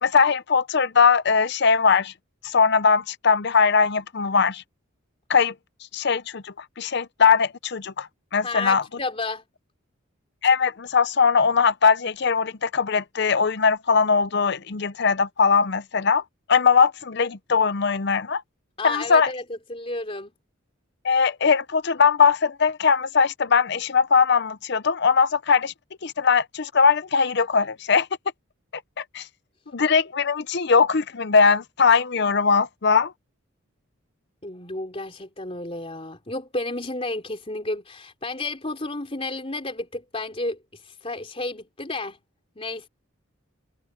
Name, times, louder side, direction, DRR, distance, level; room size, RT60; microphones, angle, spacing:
voice 1, 0.0-2.1 2.4-4.6 5.3-5.5 5.9-8.8 10.4-16.2 16.5-18.4 18.8-19.3 21.0-25.7 26.0-28.1 29.0-29.3 29.7-33.1, left 5 dB, 55° left, 0.7 m, -20 dB
voice 2, 8.4-9.4 18.8-20.3 34.4-42.2 42.5-42.9, left 2 dB, 30° left, 3.5 m, -32 dB
head